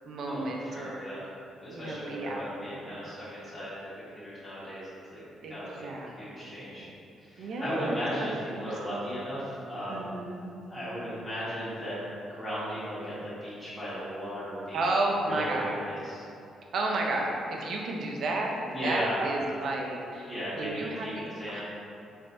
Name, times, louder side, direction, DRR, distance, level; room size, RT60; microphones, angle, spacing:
voice 1, 0.0-1.0 1.7-3.0 5.4-6.6 7.4-8.3 8.5-9.2 9.9-10.5 14.7-15.8 16.7-21.6, right 2 dB, 65° right, 0 dB, 0.5 m, -33 dB
voice 2, 0.7-1.2 1.6-5.2 5.5-5.9 6.2-6.9 7.2-10.1 10.7-11.9 12.3-13.1 13.4-14.9 15.2-16.2 18.7-19.3 20.3-21.1 21.4-21.6, equal, 25° left, -11 dB, 1.2 m, -36 dB
3.3 x 3.2 x 2.6 m, 2.6 s
cardioid pair, 90°, 0 cm